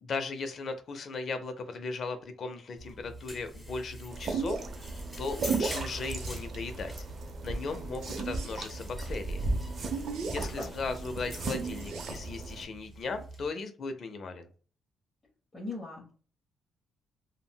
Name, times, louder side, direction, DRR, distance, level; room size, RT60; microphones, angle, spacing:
voice 1, 0.0-4.7 5.2-7.0 7.4-9.4 10.2-14.5, left 4 dB, 55° left, 8 dB, 0.5 m, -37 dB
sound 1, 2.8-13.5, right 1 dB, ahead, 1.2 m, -45 dB
sound 2, 4.1-12.6, right 3 dB, 55° right, 0.6 m, -35 dB
sound 3, 4.5-4.6 5.8-6.4 8.0-8.6 9.8-10.6 11.4-12.2, right 5 dB, 90° right, 0.7 m, -50 dB
voice 2, 10.2-10.7 15.5-16.2, left 2 dB, 25° left, -4 dB, 0.9 m, -40 dB
3.5 x 2.1 x 2.2 m, 0.40 s
cardioid pair, 90°, 0 cm